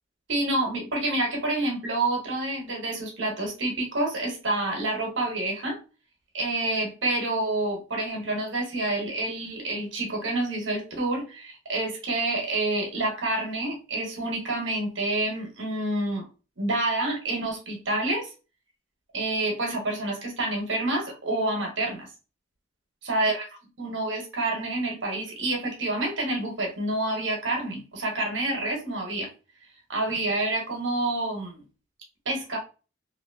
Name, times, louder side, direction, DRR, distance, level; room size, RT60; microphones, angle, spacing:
voice 1, 0.3-5.8 6.3-16.3 16.6-18.3 19.1-22.1 23.0-23.4 23.8-29.3 29.9-31.6 32.2-32.6, right 2 dB, 80° right, 1 dB, 1.1 m, -28 dB
2.9 x 2.6 x 2.6 m, 0.33 s
head